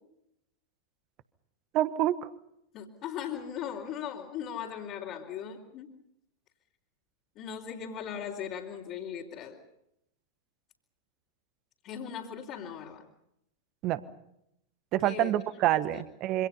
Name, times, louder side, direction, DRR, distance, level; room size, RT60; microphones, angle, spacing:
voice 1, 1.7-2.3 13.8-14.0 14.9-16.5, right 14 dB, 40° right, 15 dB, 1.3 m, -27 dB
voice 2, 2.7-5.9 7.3-9.6 11.8-13.0 15.0-15.3 15.9-16.0, left 8 dB, 40° left, -4 dB, 3.3 m, -38 dB
27.0 x 25.5 x 5.6 m, 0.81 s
figure-of-eight pair, 90°, 0 cm